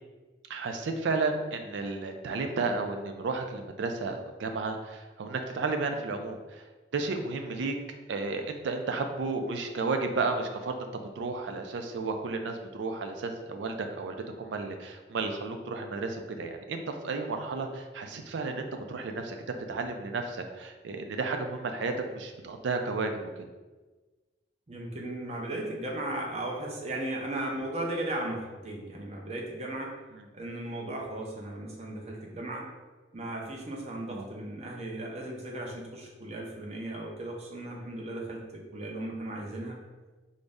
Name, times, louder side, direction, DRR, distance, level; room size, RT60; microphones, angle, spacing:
voice 1, 0.5-6.6 6.9-7.7 8.1-10.9 11.2-19.4 19.7-23.1 30.1-30.3 34.1-34.3, right 3 dB, 85° right, 5 dB, 0.4 m, -32 dB
voice 2, 24.7-29.9 30.3-32.7 33.1-39.8, right 1 dB, 35° right, -1 dB, 0.6 m, -36 dB
3.8 x 2.0 x 3.5 m, 1.3 s
head